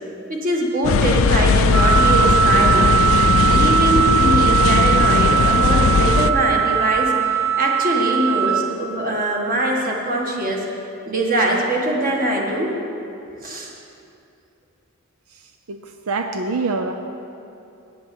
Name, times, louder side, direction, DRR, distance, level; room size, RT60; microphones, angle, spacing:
voice 1, 0.3-2.9 3.5-10.6 11.1-12.8 13.4-13.7, right 1 dB, 40° right, -1 dB, 1.7 m, -22 dB
sound 1, 0.8-6.3, left 5 dB, 65° left, 0.4 m, -18 dB
Wind instrument woodwind instrument, 1.7-8.6, right 9 dB, 10° right, 0.5 m, -19 dB
voice 2, 15.7-16.9, right 3 dB, 90° right, 6 dB, 0.6 m, -25 dB
9.5 x 8.4 x 7.7 m, 2.6 s
head